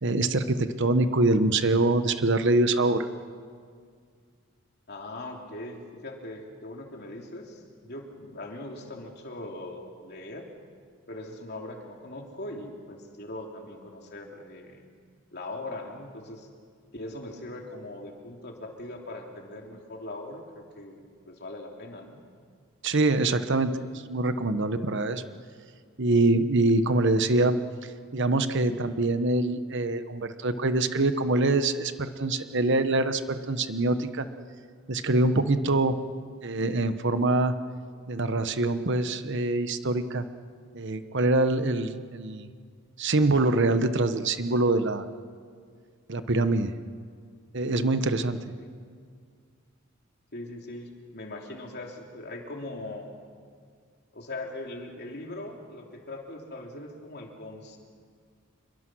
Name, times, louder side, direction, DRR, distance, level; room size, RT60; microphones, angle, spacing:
voice 1, 0.0-3.1 22.8-23.7 24.1-25.2 26.0-27.6 28.1-34.2 34.9-35.9 36.4-37.5 38.1-40.2 40.7-42.5 43.0-45.1 46.1-46.7 47.5-48.4, right 2 dB, 60° right, 10 dB, 1.1 m, -24 dB
voice 2, 4.9-10.5 11.1-14.9 15.3-16.5 16.9-22.2 35.6-35.8 48.6-48.7 50.3-53.1 54.1-57.8, left 2 dB, 50° left, 1 dB, 3.2 m, -40 dB
27.0 x 23.0 x 6.3 m, 2.1 s
head